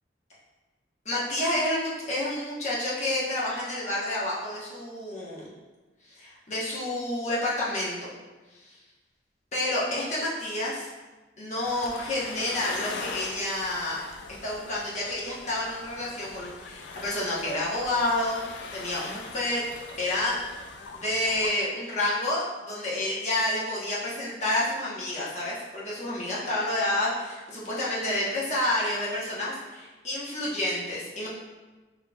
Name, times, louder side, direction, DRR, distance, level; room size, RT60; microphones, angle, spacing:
voice 1, 1.0-5.5 6.1-8.1 8.6-8.7 9.5-10.9 11.4-14.0 14.4-18.5 18.7-19.6 20.0-31.3, left 1 dB, 40° left, -7 dB, 1.0 m, -29 dB
sound 1, 11.6-21.5, left 4 dB, 80° left, 0.4 m, -41 dB
5.9 x 3.1 x 2.3 m, 1.2 s
head